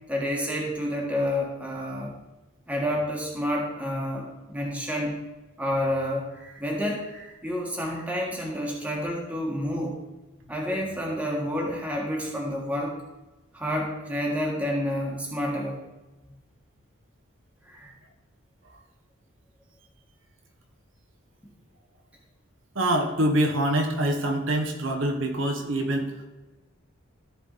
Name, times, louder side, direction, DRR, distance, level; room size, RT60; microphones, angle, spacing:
voice 1, 0.1-2.1 2.7-5.2 5.6-9.9 10.5-13.0 13.5-15.8 17.7-17.9, equal, 5° right, -2 dB, 1.6 m, -29 dB
voice 2, 22.7-26.1, right 1 dB, 70° right, 3 dB, 1.2 m, -25 dB
14.0 x 4.7 x 4.1 m, 1.1 s
head